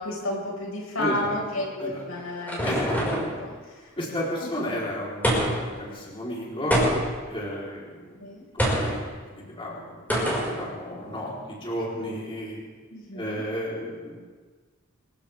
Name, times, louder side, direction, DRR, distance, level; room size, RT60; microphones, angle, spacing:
voice 1, 0.0-3.9 4.4-4.5 4.8-4.9 8.2-8.4 12.9-13.4, left 1 dB, 85° left, -2 dB, 5.5 m, -32 dB
voice 2, 1.0-1.3 1.8-2.0 2.6-3.0 4.0-6.8 7.3-8.2 8.5-9.0 9.3-9.8 10.1-12.6 13.1-14.1, equal, 25° left, -5 dB, 3.8 m, -33 dB
sound 1, 1.8-3.4 5.2-5.7 6.7-7.2 8.6-9.0 10.1-10.5, equal, 10° left, 5.5 m, -24 dB
24.5 x 16.0 x 3.6 m, 1.4 s
head